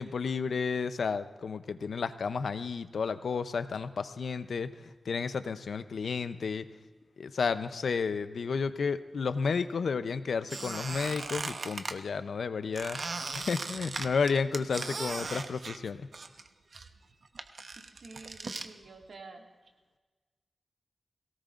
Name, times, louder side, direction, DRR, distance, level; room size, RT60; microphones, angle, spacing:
voice 1, 0.0-6.7 7.2-13.0 13.4-16.1, left 5 dB, 80° left, 11 dB, 0.6 m, -32 dB
Squeak, 10.5-12.0 12.8-16.5 16.7-18.7, right 3 dB, 55° right, 0.8 m, -38 dB
voice 2, 17.8-19.5, right 3 dB, 70° right, 0 dB, 2.2 m, -50 dB
22.0 x 17.5 x 2.5 m, 1.3 s
wide cardioid pair, 115°, 0 cm